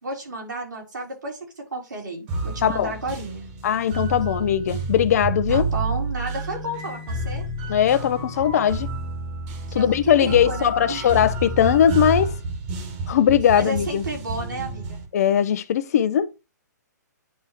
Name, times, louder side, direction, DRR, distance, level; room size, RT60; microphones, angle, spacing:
voice 1, 0.0-3.5 5.5-7.4 9.7-11.3 13.5-15.0, right 2 dB, 85° right, 4.1 m, -32 dB
sound 1, 2.3-15.0, right 3 dB, 35° right, 2.0 m, -30 dB
voice 2, 2.6-2.9 3.6-5.6 7.7-8.9 9.7-12.3 13.1-14.0 15.1-16.3, left 9 dB, 60° left, 0.8 m, -20 dB
9.8 x 3.5 x 4.5 m
hypercardioid pair, 140°, 10 cm